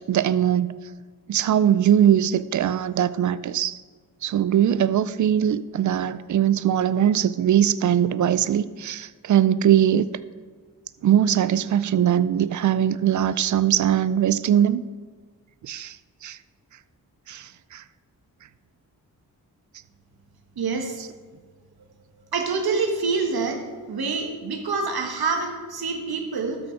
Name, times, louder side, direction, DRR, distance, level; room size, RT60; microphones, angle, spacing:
voice 1, 0.1-0.8 1.3-3.8 4.2-10.1 11.0-14.9 15.6-16.0 16.2-16.4 17.3-17.8, right 10 dB, 55° right, 16 dB, 0.5 m, -21 dB
voice 2, 20.6-21.0 22.3-23.6 23.9-26.6, right 4 dB, 80° right, 4 dB, 1.5 m, -26 dB
12.5 x 6.2 x 4.6 m, 1.5 s
wide cardioid pair, 95°, 37 cm